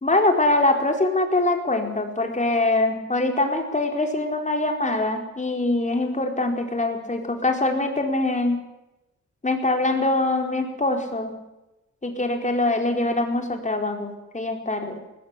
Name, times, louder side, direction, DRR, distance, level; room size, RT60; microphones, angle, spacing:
voice 1, 0.0-8.6 9.4-11.4 12.0-14.9, left 2 dB, 25° left, 3 dB, 4.4 m, -23 dB
20.0 x 20.0 x 8.4 m, 0.97 s
wide cardioid pair, 100°, 30 cm